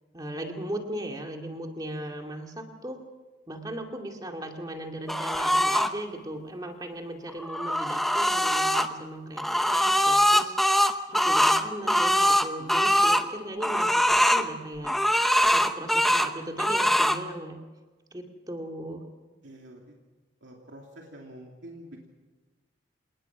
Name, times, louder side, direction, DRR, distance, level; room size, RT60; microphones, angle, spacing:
voice 1, 0.1-3.0 3.5-9.5 9.7-10.6 11.1-14.9 15.5-17.6 18.1-19.0, right 1 dB, 20° right, 2 dB, 2.4 m, -37 dB
sound 1, 5.1-5.9 7.3-8.9 9.4-13.2 13.6-14.5 14.8-16.3 16.6-17.2, equal, ahead, 0.8 m, -22 dB
voice 2, 19.4-20.0 20.4-22.1, right 1 dB, 80° right, 0 dB, 2.7 m, -46 dB
27.5 x 19.0 x 6.1 m, 1.3 s
head